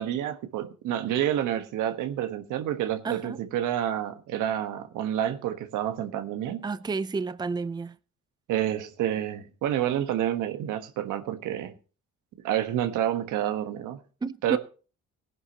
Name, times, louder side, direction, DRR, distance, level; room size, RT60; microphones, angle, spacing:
voice 1, 0.0-6.6 8.5-11.7 12.4-14.0 14.4-14.6, right 11 dB, 90° right, 1.4 m, -29 dB
voice 2, 3.0-3.4 6.6-8.0 14.2-14.6, right 4 dB, 15° right, 0.5 m, -31 dB
18.0 x 10.5 x 2.9 m
cardioid pair, 90°, 30 cm